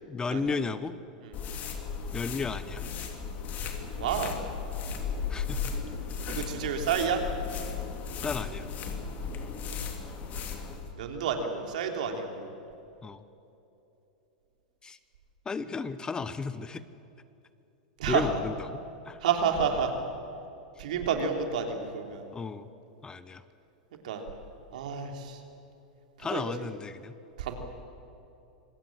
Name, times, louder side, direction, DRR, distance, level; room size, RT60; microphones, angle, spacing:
voice 1, 0.1-1.0 2.1-2.8 5.3-5.6 8.2-8.7 13.0-13.2 14.8-15.0 15.5-16.8 18.1-19.2 22.3-22.7 23.0-23.4 26.2-27.1, left 4 dB, 15° left, 14 dB, 1.0 m, -33 dB
sound 1, 1.3-10.9, left 6 dB, 40° left, 3.0 m, -36 dB
voice 2, 4.0-4.4 6.3-7.2 10.9-12.5 18.0-18.3 19.2-19.9 20.8-22.2 24.0-24.2 24.7-25.4 26.3-26.7 27.4-27.5, right 7 dB, 70° right, 4 dB, 3.3 m, -30 dB
26.0 x 18.5 x 7.7 m, 2.9 s
hypercardioid pair, 100°, 4 cm